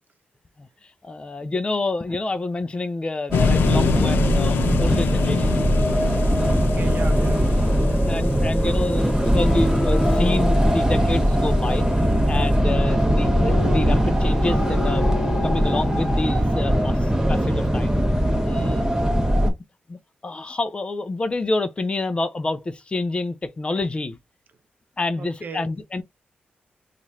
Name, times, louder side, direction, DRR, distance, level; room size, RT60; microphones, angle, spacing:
voice 1, 1.0-5.7 6.3-6.6 7.6-11.9 12.3-15.1 15.4-18.0 18.4-18.9 19.3-19.5 19.9-24.2 25.0-26.0, left 2 dB, 30° left, 0.5 m, -28 dB
sound 1, 3.3-11.4, left 8 dB, 90° left, 0.3 m, -28 dB
sound 2, 3.3-19.5, equal, 10° right, 1.2 m, -20 dB
voice 2, 6.6-8.1 12.7-13.0 18.5-18.9 25.2-25.7, right 4 dB, 60° right, 0.8 m, -37 dB
sound 3, 9.2-16.2, left 4 dB, 75° left, 1.0 m, -34 dB
3.0 x 2.5 x 4.2 m
cardioid pair, 75°, 3 cm